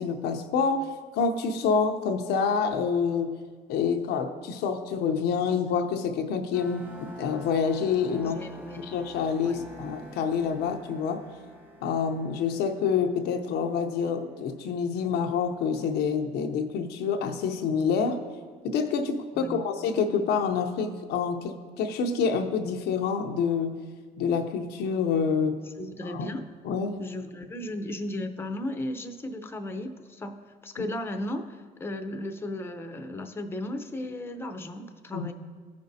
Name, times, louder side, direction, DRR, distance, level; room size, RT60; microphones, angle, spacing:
voice 1, 0.0-3.3 3.7-6.9 7.2-8.4 8.8-11.2 11.8-18.3 18.6-23.8 24.2-25.6 26.0-26.3 26.6-27.0 30.8-30.9 35.1-35.3, left 6 dB, 80° left, 5 dB, 0.7 m, -27 dB
sound 1, 6.5-15.1, right 1 dB, 10° right, 1.2 m, -49 dB
voice 2, 8.1-8.9 9.4-9.6 19.4-19.7 25.8-26.5 27.0-30.4 30.6-35.3, left 1 dB, 15° left, 6 dB, 0.7 m, -35 dB
14.5 x 5.2 x 2.7 m, 1.5 s
cardioid pair, 90°, 17 cm